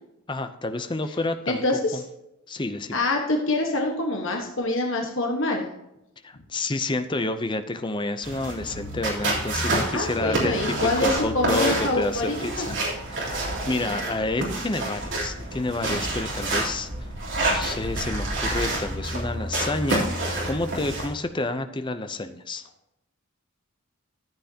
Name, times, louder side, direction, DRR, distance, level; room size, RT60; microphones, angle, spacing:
voice 1, 0.3-1.6 2.5-3.0 6.2-12.8 13.1-16.9 17.4-22.6, left 2 dB, 20° left, 9 dB, 0.6 m, -29 dB
voice 2, 1.5-2.0 2.9-5.7 9.9-12.7, left 2 dB, 60° left, 1 dB, 1.3 m, -25 dB
sound 1, 8.2-21.1, right 2 dB, 55° right, 3.3 m, -28 dB
13.5 x 8.0 x 2.8 m, 0.88 s
head